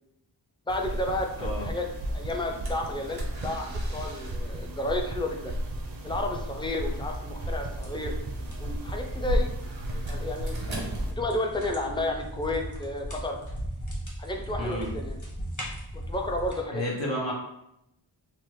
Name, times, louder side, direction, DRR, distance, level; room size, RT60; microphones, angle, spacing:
voice 1, 0.7-1.9 2.1-5.5 6.0-8.1 8.6-9.5 10.0-13.4 14.2-15.2 15.9-16.8, left 2 dB, 10° left, 2 dB, 0.4 m, -32 dB
sound 1, 0.7-11.1, right 1 dB, 50° right, 0.5 m, -35 dB
sound 2, 1.6-12.8, equal, 90° right, 0.8 m, -39 dB
sound 3, 7.6-16.6, equal, 40° left, 1.1 m, -38 dB
voice 2, 14.6-14.9 16.7-17.3, left 1 dB, 75° left, -3 dB, 0.8 m, -31 dB
3.2 x 2.0 x 3.0 m, 0.82 s
wide cardioid pair, 50°, 45 cm